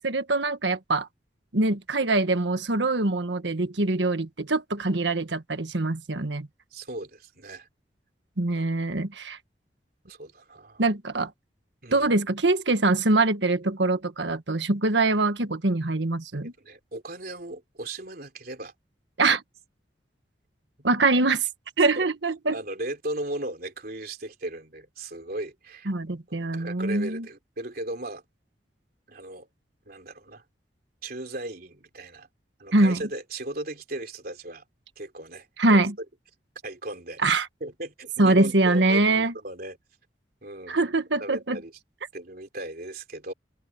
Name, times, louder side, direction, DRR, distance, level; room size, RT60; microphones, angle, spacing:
voice 1, 0.0-1.1 1.5-6.5 8.4-9.4 10.8-11.3 11.9-16.5 19.2-19.4 20.8-21.5 21.8-22.6 25.9-27.2 32.7-33.0 35.6-35.9 37.2-37.5 38.2-39.3 40.7-41.6, right 2 dB, 90° right, 1.5 m, -23 dB
voice 2, 6.7-7.7 8.5-8.6 10.1-10.8 11.8-12.1 16.6-18.7 19.2-19.4 21.9-22.1 22.5-25.9 26.3-28.2 29.1-29.5 29.9-30.4 31.0-32.3 32.6-34.6 35.0-35.8 36.6-37.2 37.6-39.8 40.4-40.8 41.2-41.7 42.1-43.3, right 1 dB, 55° right, 3.4 m, -37 dB
open air
head